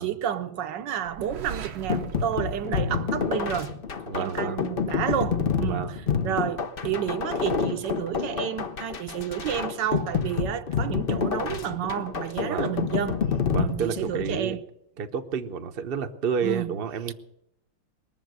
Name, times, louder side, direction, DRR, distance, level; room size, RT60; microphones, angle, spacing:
voice 1, 0.0-3.7 4.1-6.0 6.2-13.2 13.6-14.6 16.4-16.8 17.1-17.2, right 10 dB, 70° right, 1.3 m, -30 dB
sound 1, 1.0-3.9, right 6 dB, 85° right, 1.8 m, -40 dB
sound 2, 1.9-14.5, left 6 dB, 55° left, 0.6 m, -28 dB
voice 2, 4.1-4.6 5.6-6.4 12.4-12.7 13.5-14.6 15.0-17.1, right 6 dB, 45° right, 0.7 m, -30 dB
21.0 x 7.2 x 9.3 m
omnidirectional pair, 2.1 m